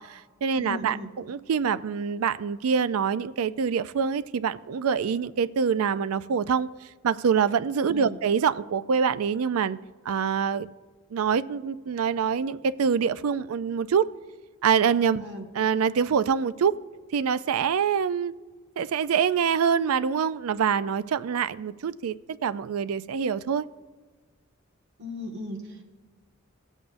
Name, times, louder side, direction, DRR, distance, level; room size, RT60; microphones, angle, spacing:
voice 1, 0.0-6.7 7.0-9.8 10.1-10.7 11.1-14.1 14.6-15.2 15.5-16.8 17.1-18.3 18.8-22.2 22.4-23.6, right 7 dB, 80° right, 14 dB, 0.4 m, -25 dB
voice 2, 0.6-1.1 7.9-8.2 15.2-15.5 25.0-25.8, left 2 dB, 55° right, -1 dB, 1.7 m, -37 dB
16.5 x 8.1 x 2.6 m, 1.3 s
head